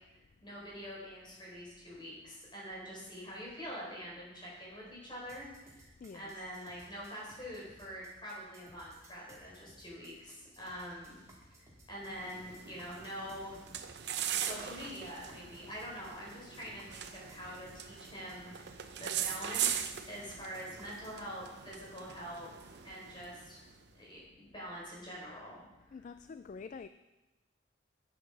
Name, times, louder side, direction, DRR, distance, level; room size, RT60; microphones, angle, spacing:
voice 1, 0.4-5.8 6.1-11.2 11.5-13.6 14.3-22.5 22.8-23.6 23.9-25.6, equal, 25° left, 4.6 m, -45 dB
sound 1, 5.3-21.2, right 2 dB, 15° right, 2.4 m, -60 dB
voice 2, 6.0-6.4 25.9-26.9, left 5 dB, 40° left, 0.3 m, -47 dB
sound 2, 12.0-23.8, right 9 dB, 65° right, 0.7 m, -40 dB
11.0 x 9.6 x 4.8 m
head